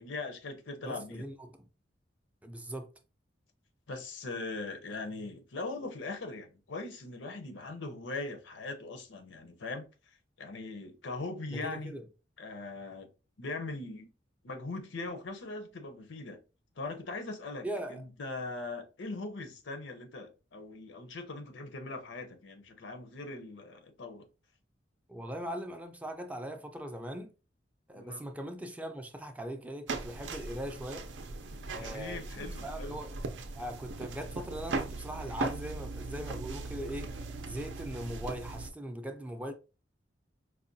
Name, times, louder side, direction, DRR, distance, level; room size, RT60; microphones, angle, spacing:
voice 1, 0.0-1.3 3.9-9.9 10.4-11.9 12.4-13.1 13.4-14.1 14.4-16.4 16.8-24.3 27.9-28.2 31.7-33.0, left 3 dB, 90° left, 0.7 m, -40 dB
voice 2, 0.8-1.5 2.4-2.9 11.5-12.1 17.6-18.0 25.1-27.3 27.9-31.1 31.7-33.1 33.6-37.1 37.4-39.5, right 1 dB, 10° right, 0.4 m, -40 dB
sound 1, 29.9-38.7, right 3 dB, 70° right, 0.5 m, -39 dB
4.7 x 2.2 x 2.6 m
head